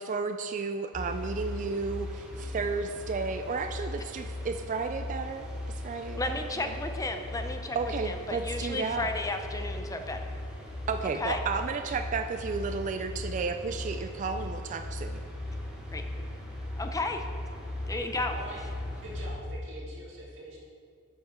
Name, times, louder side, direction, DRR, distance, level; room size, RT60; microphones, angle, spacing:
voice 1, 0.0-6.8 7.7-9.1 10.9-15.2, right 4 dB, 35° right, 7 dB, 0.3 m, -33 dB
sound 1, 0.9-19.4, left 1 dB, 5° right, 1.4 m, -38 dB
voice 2, 6.2-7.8 8.0-10.2 11.2-11.4 15.9-16.0 16.8-17.2 17.9-18.3, left 2 dB, 15° left, 6 dB, 0.6 m, -33 dB
voice 3, 19.0-20.6, right 1 dB, 60° right, -6 dB, 2.0 m, -43 dB
10.0 x 5.8 x 4.3 m, 2.3 s
head